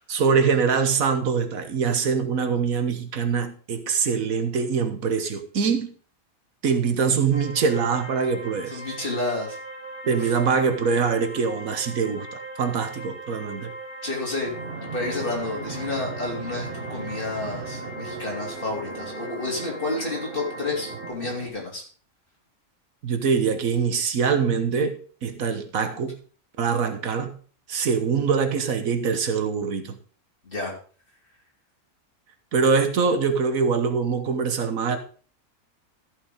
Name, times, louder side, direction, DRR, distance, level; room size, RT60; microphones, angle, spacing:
voice 1, 0.1-5.9 6.6-8.8 10.1-13.7 23.0-26.2 26.6-27.4 27.7-30.0 32.5-35.0, right 5 dB, 80° right, 1.6 m, -23 dB
sound 1, 7.3-21.1, right 2 dB, 10° right, 4.9 m, -40 dB
voice 2, 8.7-9.6 10.0-10.3 14.0-14.5 14.8-21.8 30.4-30.8, left 2 dB, 40° left, 3.4 m, -30 dB
Fixed-wing aircraft airplane, 14.4-21.5, right 4 dB, 45° right, 1.6 m, -38 dB
14.5 x 5.5 x 5.1 m
omnidirectional pair, 1.4 m